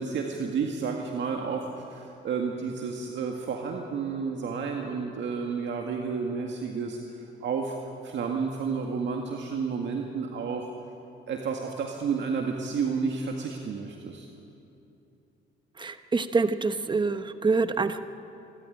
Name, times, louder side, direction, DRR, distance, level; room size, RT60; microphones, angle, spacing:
voice 1, 0.0-7.8 8.0-10.7 11.3-14.3, right 5 dB, 65° right, 1 dB, 2.0 m, -31 dB
voice 2, 15.8-18.0, right 4 dB, 25° right, 10 dB, 1.1 m, -26 dB
27.5 x 13.0 x 10.0 m, 2.8 s
cardioid pair, 90°, 20 cm